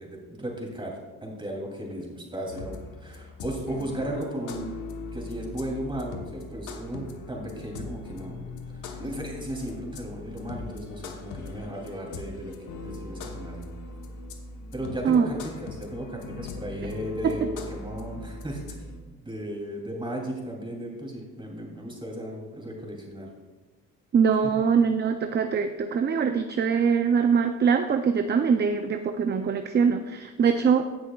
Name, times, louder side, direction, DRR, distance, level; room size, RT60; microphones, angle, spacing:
voice 1, 0.0-4.7 5.1-8.4 8.7-13.7 14.7-18.9 19.2-23.3 24.6-24.7, right 1 dB, 15° right, -1 dB, 2.9 m, -35 dB
sound 1, 2.5-19.0, left 3 dB, 80° left, 1.1 m, -40 dB
voice 2, 24.1-30.9, right 6 dB, 35° right, 7 dB, 0.5 m, -23 dB
17.5 x 6.2 x 2.3 m, 1.3 s
cardioid pair, 90°, 30 cm